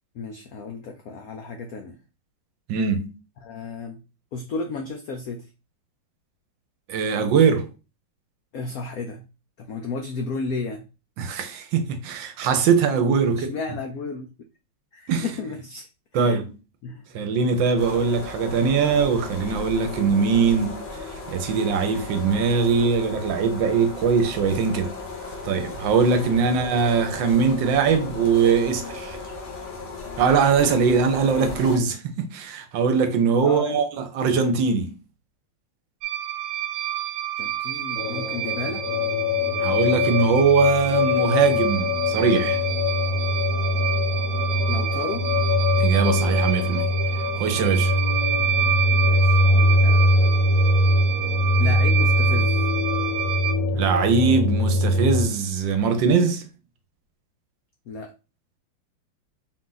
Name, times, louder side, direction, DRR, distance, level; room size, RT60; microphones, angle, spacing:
voice 1, 0.1-2.0 3.4-4.0 4.3-5.5 8.5-9.3 9.6-10.8 13.4-14.3 14.9-15.9 16.1-16.4 16.8-17.2 33.4-33.8 37.4-38.9 44.7-45.3 48.9-50.3 51.6-52.6 57.9-58.1, left 4 dB, 80° left, 0.8 m, -33 dB
voice 2, 2.7-3.1 6.9-7.7 11.2-13.5 15.1-15.3 16.1-16.4 17.1-20.7 21.3-24.9 25.4-29.2 30.2-34.9 39.6-42.6 45.8-46.9 47.4-47.9 53.7-56.4, right 5 dB, 75° right, 1.3 m, -21 dB
sound 1, 17.8-31.8, left 3 dB, 45° left, 0.8 m, -36 dB
sound 2, 36.0-53.5, right 12 dB, 90° right, 0.8 m, -28 dB
sound 3, 38.0-55.3, left 2 dB, 65° left, 1.4 m, -22 dB
4.2 x 2.5 x 3.9 m
omnidirectional pair, 2.2 m